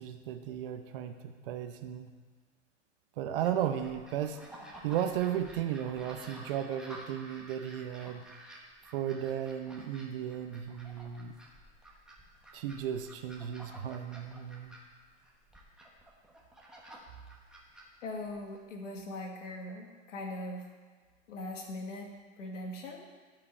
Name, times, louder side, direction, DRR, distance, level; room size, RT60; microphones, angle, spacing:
voice 1, 0.0-2.1 3.2-4.4 4.8-8.2 8.9-11.3 12.5-14.8, right 10 dB, 45° right, 8 dB, 0.8 m, -35 dB
sound 1, 3.4-18.6, right 1 dB, ahead, 1.0 m, -52 dB
voice 2, 18.0-20.7 21.3-22.1 22.4-23.0, left 1 dB, 75° left, 1 dB, 2.1 m, -40 dB
13.5 x 5.0 x 4.4 m, 1.5 s
hypercardioid pair, 135°, 38 cm